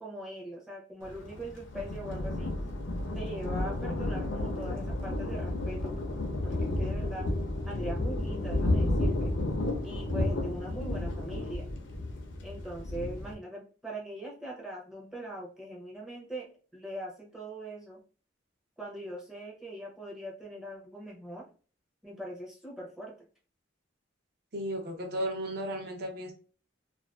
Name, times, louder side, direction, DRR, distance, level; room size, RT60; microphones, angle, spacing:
voice 1, 0.0-2.5 3.1-6.0 6.4-7.3 7.7-9.3 9.8-11.6 12.4-18.0 18.8-21.5 22.0-23.1, right 1 dB, 5° right, -3 dB, 0.5 m, -41 dB
Thunder, 1.0-13.3, left 1 dB, 70° left, 0.5 m, -32 dB
voice 2, 24.5-26.3, equal, 50° right, 3 dB, 0.6 m, -34 dB
2.4 x 2.2 x 2.2 m, 0.39 s
head